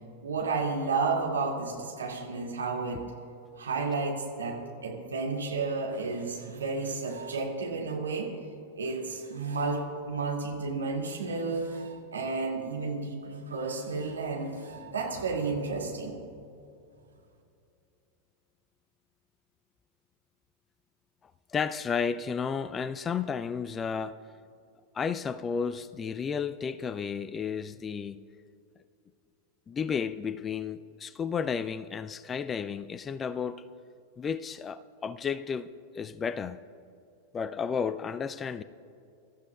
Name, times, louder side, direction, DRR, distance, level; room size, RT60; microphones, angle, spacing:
voice 1, 0.2-3.0 3.6-8.3 8.8-16.2, right 4 dB, 70° right, 2.2 m, -32 dB
voice 2, 21.5-24.2 24.9-28.2 29.7-33.7 34.2-35.7 35.9-36.6 37.3-38.6, left 6 dB, 20° left, 0.4 m, -32 dB
25.0 x 13.5 x 2.3 m
figure-of-eight pair, 90°, 0 cm